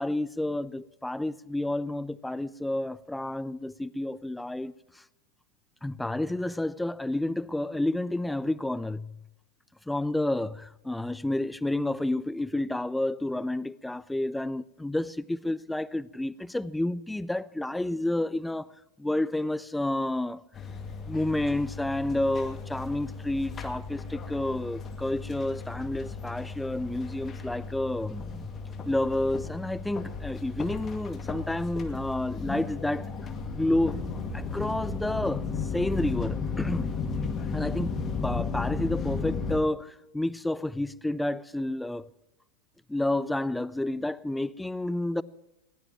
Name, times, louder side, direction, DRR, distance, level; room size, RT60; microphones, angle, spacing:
voice 1, 0.0-4.7 5.8-9.2 9.9-18.7 19.0-20.4 21.1-28.5 28.9-33.1 33.5-34.0 34.3-35.5 35.7-36.9 37.5-42.1 42.9-45.2, left 1 dB, 5° left, 0.5 m, -30 dB
sound 1, 20.5-39.6, left 4 dB, 20° left, 2.2 m, -34 dB
21.0 x 18.0 x 3.0 m
figure-of-eight pair, 90°, 0 cm